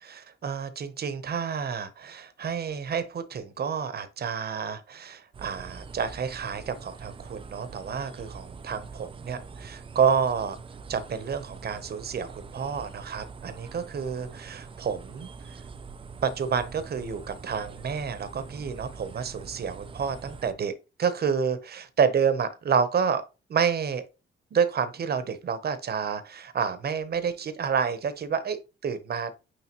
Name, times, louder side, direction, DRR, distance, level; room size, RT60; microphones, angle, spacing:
voice 1, 0.0-10.6 10.9-15.3 16.2-20.7 21.0-23.2 23.5-24.0 24.5-29.3, right 6 dB, 50° right, 0.9 m, -29 dB
sound 1, 5.3-20.5, right 5 dB, 25° right, 0.4 m, -44 dB
9.2 x 3.4 x 3.0 m
wide cardioid pair, 140°, 21 cm